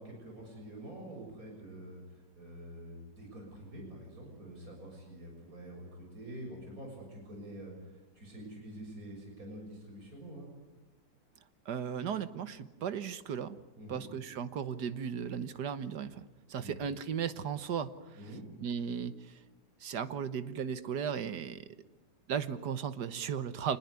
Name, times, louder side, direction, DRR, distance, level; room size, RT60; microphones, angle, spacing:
voice 1, 0.0-10.5 13.8-14.0 16.6-16.7 18.2-18.4, right 1 dB, 55° right, 0 dB, 7.1 m, -47 dB
voice 2, 11.6-13.6 13.9-18.2 18.6-19.4 19.8-21.6 22.3-23.8, right 7 dB, 70° right, 13 dB, 1.7 m, -36 dB
26.5 x 20.0 x 9.6 m, 1.1 s
omnidirectional pair, 1.8 m